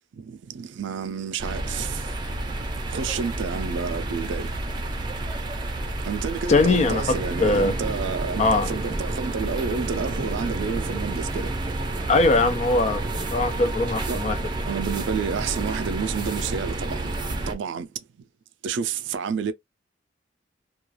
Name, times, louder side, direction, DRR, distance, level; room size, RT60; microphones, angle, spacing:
voice 1, 0.5-2.0 2.9-4.5 6.0-11.5 14.1-14.2 14.7-17.1 17.5-17.9 18.6-19.5, right 6 dB, 75° right, 0.4 m, -29 dB
sound 1, 1.4-17.5, right 2 dB, 25° right, 0.6 m, -30 dB
voice 2, 6.5-7.7 8.4-8.7 12.1-13.0 13.3-14.4, left 3 dB, 35° left, 0.4 m, -21 dB
2.3 x 2.3 x 3.0 m
head